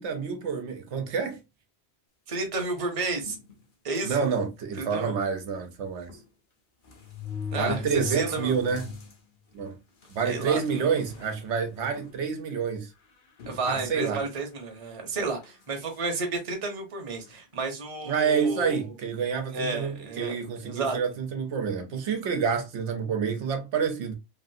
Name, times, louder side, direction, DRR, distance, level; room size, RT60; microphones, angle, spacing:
voice 1, 0.0-1.4 4.0-6.1 7.5-8.9 9.5-9.8 10.1-12.9 13.6-14.2 18.1-24.1, right 6 dB, 85° right, 1.0 m, -28 dB
voice 2, 2.3-3.4 3.8-4.3 4.8-5.2 7.5-8.5 10.2-10.9 13.5-18.9 19.5-21.0, right 3 dB, 35° right, 0.8 m, -32 dB
sound 1, 3.3-3.5 4.3-4.4 4.7-4.8 6.1-6.2 6.9-9.1 9.6-9.7 10.5-10.6 11.0-11.3 12.0-12.1 13.4-14.2 15.2-15.4, left 5 dB, 55° left, 0.9 m, -38 dB
3.0 x 2.5 x 2.6 m
omnidirectional pair, 1.1 m